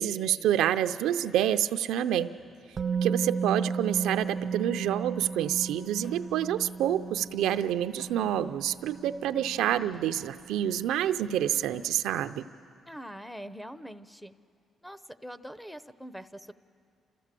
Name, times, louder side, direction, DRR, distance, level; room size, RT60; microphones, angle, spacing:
voice 1, 0.0-2.3 3.0-12.5, right 11 dB, 90° right, 9 dB, 0.5 m, -28 dB
sound 1, 2.4-10.2, left 3 dB, 50° left, 3.1 m, -59 dB
Musical instrument, 2.8-10.7 10.9-11.1, right 5 dB, 40° right, 0.5 m, -35 dB
voice 2, 12.9-14.3 14.8-16.5, equal, 5° left, 9 dB, 0.7 m, -43 dB
29.0 x 14.5 x 7.5 m, 2.4 s
cardioid pair, 90°, 0 cm